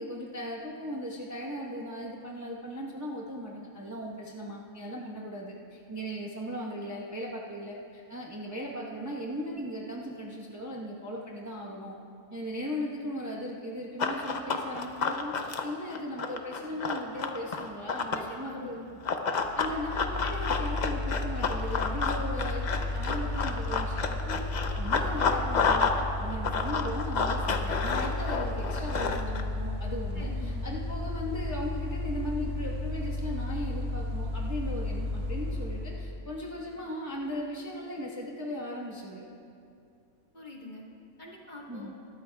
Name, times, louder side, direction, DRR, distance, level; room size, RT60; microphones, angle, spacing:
voice 1, 0.0-12.0 12.3-18.8 19.3-24.5 24.7-25.9 26.2-39.2 41.7-41.9, equal, 15° right, -3 dB, 0.9 m, -37 dB
Run, 14.0-18.3 19.1-26.0 26.3-29.4, left 5 dB, 50° left, 0.5 m, -30 dB
voice 2, 18.1-18.9 30.1-30.6 40.3-40.8 41.2-41.9, left 2 dB, 30° left, -3 dB, 1.6 m, -45 dB
Mechanical fan, 19.4-36.2, left 2 dB, 90° right, 2.3 m, -33 dB
22.0 x 13.0 x 2.3 m, 2.5 s
omnidirectional pair, 1.6 m